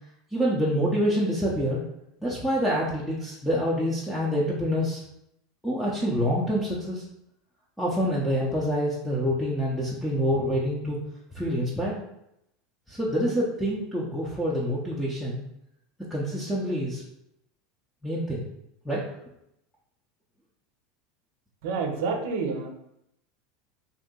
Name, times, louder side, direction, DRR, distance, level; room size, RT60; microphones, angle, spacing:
voice 1, 0.3-1.8 2.2-5.0 5.6-7.0 7.8-11.0 11.3-12.0 12.9-15.4 16.1-17.0 18.0-18.4 18.8-19.0, equal, 5° left, -7 dB, 0.7 m, -26 dB
voice 2, 21.6-22.7, right 4 dB, 70° right, 5 dB, 0.5 m, -28 dB
2.7 x 2.6 x 3.7 m, 0.79 s
supercardioid pair, 110°, 0 cm